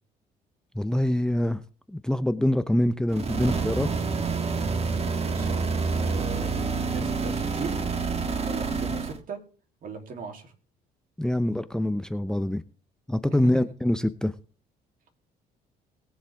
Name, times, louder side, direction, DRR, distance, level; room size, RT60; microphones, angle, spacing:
voice 1, 0.7-1.6 1.9-3.9 11.2-12.6 13.1-14.3, left 1 dB, 5° left, 13 dB, 0.7 m, -25 dB
sound 1, 3.1-9.2, right 4 dB, 40° right, 1.7 m, -28 dB
voice 2, 5.2-5.7 6.0-7.8 8.4-9.4 9.8-10.5 13.4-13.6, right 3 dB, 55° right, 4 dB, 3.2 m, -38 dB
21.0 x 7.3 x 3.6 m, 0.39 s
supercardioid pair, 85°, 17 cm